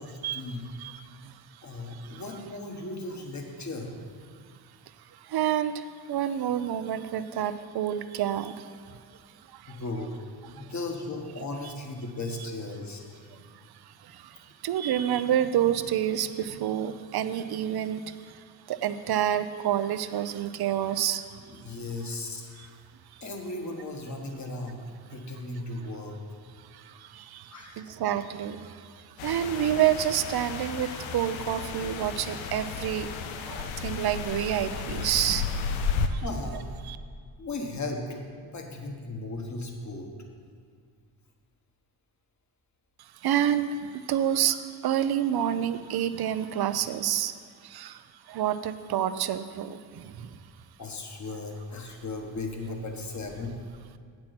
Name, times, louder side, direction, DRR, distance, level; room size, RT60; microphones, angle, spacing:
voice 1, 0.0-0.6 1.6-3.9 9.7-10.1 10.5-13.2 21.5-22.7 23.2-24.8 25.1-26.2 27.5-27.9 36.2-36.6 37.4-40.1 50.8-53.6, left 2 dB, 40° left, 2 dB, 1.5 m, -36 dB
voice 2, 0.8-2.2 5.1-9.0 9.5-9.8 10.5-10.7 13.3-13.4 13.7-21.4 22.6-22.7 23.1-23.2 26.6-33.1 33.4-35.8 36.1-36.2 36.8-37.0 43.0-47.3 47.6-50.4, right 10 dB, 55° right, 12 dB, 0.6 m, -29 dB
sound 1, 29.2-36.1, left 6 dB, 85° left, 0.7 m, -33 dB
8.4 x 6.2 x 6.0 m, 2.1 s
supercardioid pair, 55°, 46 cm